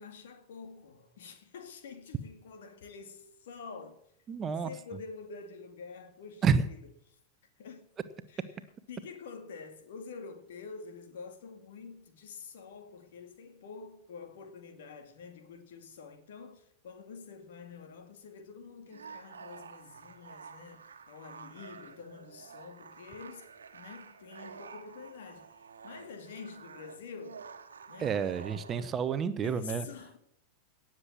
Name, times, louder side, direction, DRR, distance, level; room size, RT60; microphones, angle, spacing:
voice 1, 0.0-4.0 4.6-6.8 7.1-7.2 7.6-7.9 8.3-8.5 8.9-23.5 23.7-27.4 27.9-28.2 29.4-30.2, left 5 dB, 60° left, 2.3 m, -47 dB
voice 2, 4.3-4.7 6.4-6.6 28.0-29.9, right 6 dB, 25° right, 0.9 m, -29 dB
sound 1, 18.8-29.0, right 6 dB, 70° right, 1.4 m, -50 dB
18.0 x 7.6 x 7.3 m
figure-of-eight pair, 90°, 0 cm